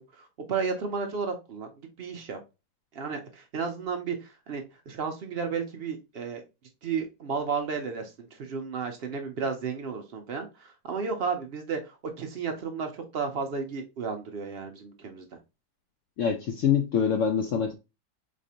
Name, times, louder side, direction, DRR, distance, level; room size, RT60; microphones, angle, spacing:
voice 1, 0.2-1.7 2.0-2.4 2.9-6.4 6.8-15.2, right 5 dB, 75° right, 0.5 m, -33 dB
voice 2, 16.2-17.7, left 7 dB, 75° left, 0.7 m, -25 dB
4.2 x 3.1 x 2.7 m
omnidirectional pair, 1.8 m